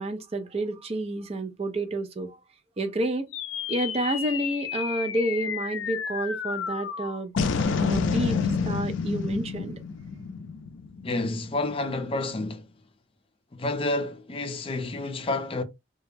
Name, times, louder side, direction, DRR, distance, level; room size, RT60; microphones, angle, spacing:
voice 1, 0.0-2.4 2.8-3.3 3.7-7.3 7.8-9.8, right 1 dB, 35° right, 0.5 m, -30 dB
sound 1, 3.3-11.9, left 5 dB, 90° left, 0.4 m, -30 dB
voice 2, 11.0-12.6 13.6-15.6, left 2 dB, 30° left, 0.4 m, -29 dB
2.3 x 2.0 x 3.1 m
head